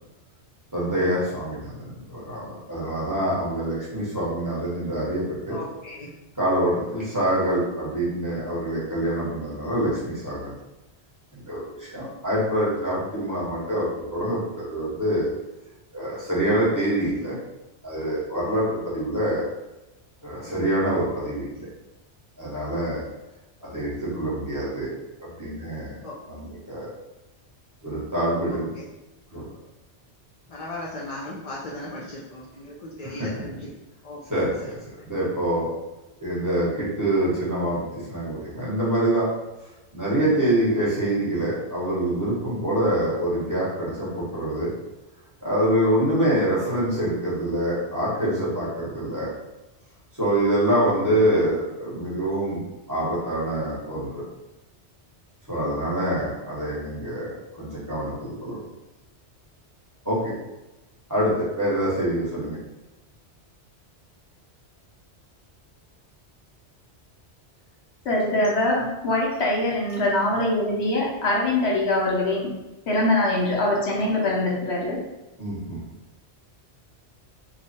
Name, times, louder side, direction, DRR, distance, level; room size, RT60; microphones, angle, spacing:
voice 1, 0.7-5.6 6.4-10.5 11.3-15.3 15.9-17.4 17.8-19.5 20.2-21.7 22.4-23.0 23.6-24.9 25.2-26.0 26.3-26.9 27.8-28.7 29.3-29.4 34.3-34.8 35.0-35.7 36.2-39.3 39.9-44.7 45.4-49.3 50.2-52.6 52.9-54.2 55.5-58.6 60.0-60.3 61.1-62.6 75.4-75.8, right 1 dB, 15° right, -9 dB, 1.3 m, -25 dB
voice 2, 5.5-6.1 26.0-26.1 28.5-28.8 30.5-32.7 33.0-33.3 34.0-34.2, left 1 dB, 40° left, -6 dB, 0.6 m, -37 dB
voice 3, 68.0-72.5 72.9-75.0, left 1 dB, 75° left, -4 dB, 1.2 m, -23 dB
3.0 x 2.4 x 4.2 m, 1.0 s
omnidirectional pair, 1.1 m